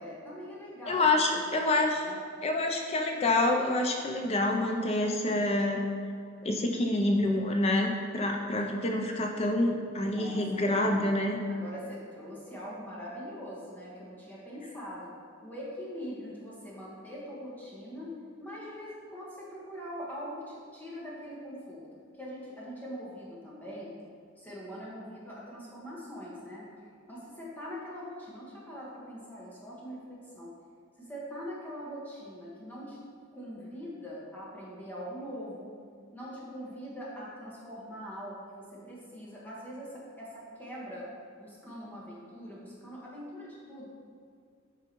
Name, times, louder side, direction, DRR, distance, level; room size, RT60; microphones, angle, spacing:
voice 1, 0.0-1.1 1.4-2.2 10.1-10.9 11.5-15.1 15.4-18.1 18.4-21.8 22.1-23.9 24.4-26.6 27.1-30.5 31.0-33.0 33.3-35.7 36.1-41.1 41.4-43.9, equal, 10° left, -7 dB, 1.5 m, -42 dB
voice 2, 0.9-2.0 2.4-5.8 6.4-11.4, left 2 dB, 30° left, 2 dB, 0.5 m, -27 dB
8.5 x 4.6 x 3.0 m, 2.2 s
head